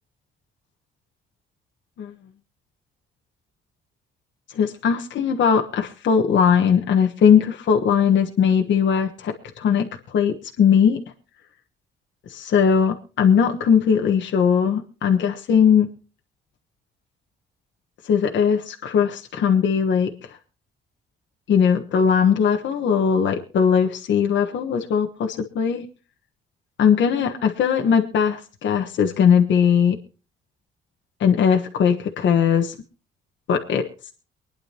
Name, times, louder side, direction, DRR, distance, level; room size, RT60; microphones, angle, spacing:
voice 1, 4.5-11.0 12.3-15.9 18.0-20.3 21.5-25.9 26.8-30.0 31.2-32.7 33.5-33.8, left 7 dB, 70° left, 3 dB, 1.4 m, -19 dB
24.0 x 10.0 x 2.9 m, 0.34 s
cardioid pair, 90°, 20 cm